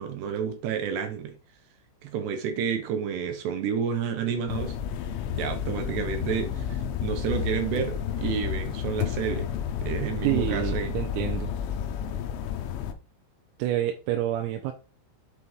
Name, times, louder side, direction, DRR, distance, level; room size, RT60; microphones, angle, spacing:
voice 1, 0.0-1.3 2.0-4.8 5.3-9.5 9.8-11.0, right 7 dB, 70° right, 2.7 m, -30 dB
sound 1, 4.5-12.9, left 8 dB, 85° left, 3.3 m, -31 dB
voice 2, 10.2-11.5 13.6-14.7, right 13 dB, 90° right, 3.5 m, -28 dB
8.0 x 5.8 x 3.6 m
omnidirectional pair, 5.9 m